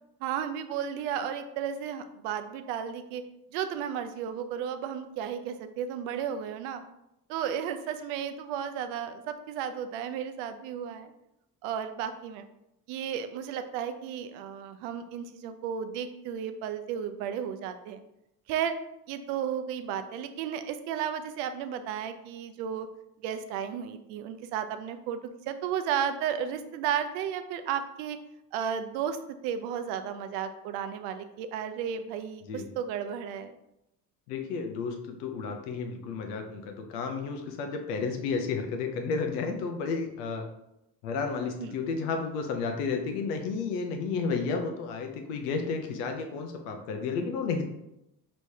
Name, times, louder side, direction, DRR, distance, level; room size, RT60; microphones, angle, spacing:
voice 1, 0.2-3.2 3.5-6.8 7.3-11.1 11.6-12.4 12.9-18.0 18.5-18.7 19.1-22.9 23.2-25.2 25.5-28.2 28.5-29.2 29.4-33.5 41.6-41.8, right 8 dB, 80° right, 9 dB, 0.6 m, -33 dB
voice 2, 34.3-40.5 41.0-47.6, left 4 dB, 90° left, 4 dB, 0.7 m, -32 dB
4.7 x 3.2 x 2.7 m, 0.86 s
hypercardioid pair, 65°, 45 cm